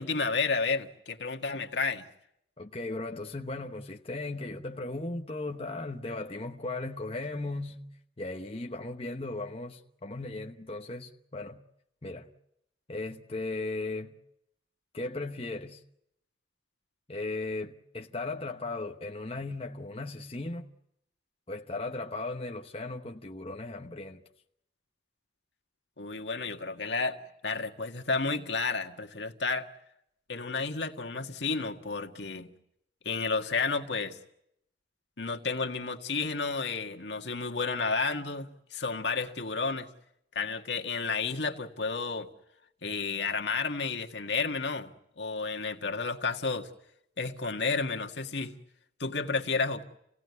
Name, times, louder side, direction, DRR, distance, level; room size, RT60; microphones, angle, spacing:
voice 1, 0.0-2.1 26.0-27.2 27.4-29.7 30.3-32.5 33.0-34.2 35.2-39.9 40.4-42.3 42.8-46.7 47.2-48.5 49.0-49.8, left 4 dB, 75° left, 1.8 m, -31 dB
voice 2, 2.6-7.9 8.2-11.6 12.0-12.3 12.9-14.1 14.9-15.8 17.1-20.7 21.5-24.2, left 2 dB, 30° left, 1.0 m, -37 dB
28.5 x 17.5 x 9.5 m
head